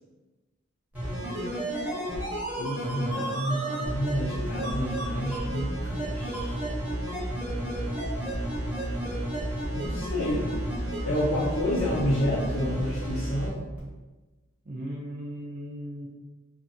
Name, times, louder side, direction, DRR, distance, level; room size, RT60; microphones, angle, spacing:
sound 1, 0.9-13.5 13.8-13.9, right 1 dB, 10° right, 0.8 m, -31 dB
voice 1, 2.6-6.6 9.7-10.5 11.1-13.7, equal, 65° left, -7 dB, 0.5 m, -29 dB
voice 2, 14.7-16.1, equal, 40° right, -4 dB, 0.4 m, -37 dB
2.6 x 2.5 x 2.7 m, 1.2 s
head